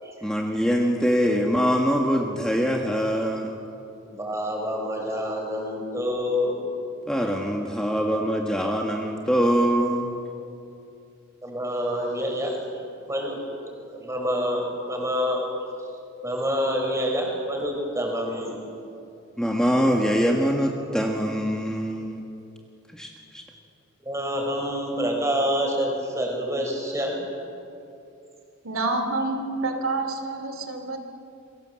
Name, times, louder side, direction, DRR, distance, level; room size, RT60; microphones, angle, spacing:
voice 1, 0.2-3.6 7.1-10.1 19.4-22.2 22.9-23.4, equal, 5° left, 1 dB, 1.5 m, -23 dB
voice 2, 4.0-6.6 11.4-12.6 13.1-13.4 13.8-15.4 16.2-18.6 24.0-27.1, equal, 15° right, 1 dB, 5.1 m, -27 dB
voice 3, 28.6-31.0, right 2 dB, 75° right, 5 dB, 2.6 m, -28 dB
28.5 x 22.5 x 7.7 m, 2.6 s
head